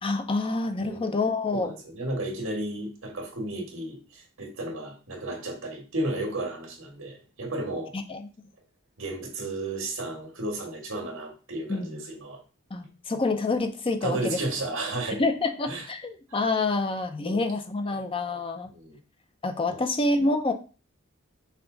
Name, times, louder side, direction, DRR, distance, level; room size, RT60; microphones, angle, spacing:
voice 1, 0.0-1.7 7.9-8.3 11.7-12.0 12.7-14.4 15.2-18.7 19.4-20.5, left 3 dB, 25° left, 7 dB, 0.5 m, -27 dB
voice 2, 0.8-1.2 1.5-7.9 9.0-12.4 14.0-15.3 15.7-15.8 17.2-17.4 18.7-19.0 19.7-19.8, right 2 dB, 70° right, 1 dB, 1.7 m, -33 dB
5.8 x 2.4 x 3.9 m, 0.35 s
head